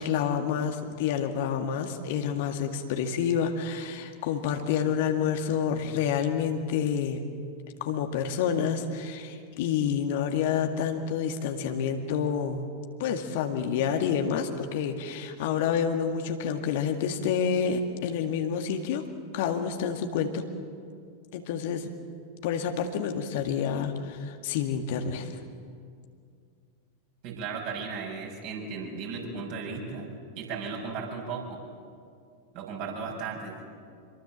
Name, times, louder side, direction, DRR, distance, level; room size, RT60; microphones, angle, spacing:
voice 1, 0.0-7.2 7.8-12.7 13.0-19.0 19.3-20.5 21.3-21.9 22.4-25.3, left 7 dB, 50° left, 5 dB, 2.0 m, -28 dB
voice 2, 27.2-30.1 30.4-31.6 32.5-33.6, right 5 dB, 45° right, 0 dB, 6.8 m, -35 dB
26.5 x 23.0 x 7.6 m, 2.2 s
figure-of-eight pair, 90°, 0 cm